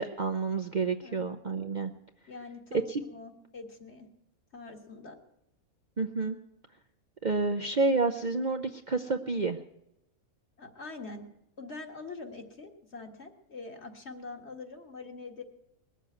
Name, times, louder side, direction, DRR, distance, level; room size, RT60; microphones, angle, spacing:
voice 1, 0.0-1.9 2.9-3.0 6.0-6.4 7.2-9.6, right 3 dB, 40° right, 5 dB, 0.7 m, -29 dB
voice 2, 1.0-1.4 2.3-4.1 4.5-5.2 10.6-11.2 11.6-15.4, left 3 dB, 50° left, 3 dB, 2.1 m, -44 dB
20.5 x 7.5 x 9.2 m, 0.85 s
omnidirectional pair, 1.5 m